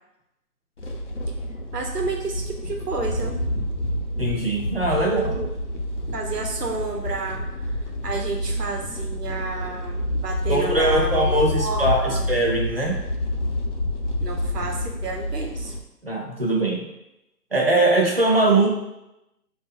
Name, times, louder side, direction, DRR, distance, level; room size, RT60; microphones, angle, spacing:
sound 1, 0.8-15.8, left 1 dB, 50° left, 0.6 m, -28 dB
voice 1, 1.7-3.4 4.9-5.5 6.1-7.7 8.0-12.3 14.2-15.7, right 3 dB, 80° right, 2 dB, 1.1 m, -31 dB
voice 2, 4.2-5.2 10.5-13.0 16.0-16.8 17.5-18.7, right 2 dB, 40° right, 0 dB, 0.6 m, -21 dB
4.3 x 2.6 x 3.7 m, 0.89 s
hypercardioid pair, 180°, 46 cm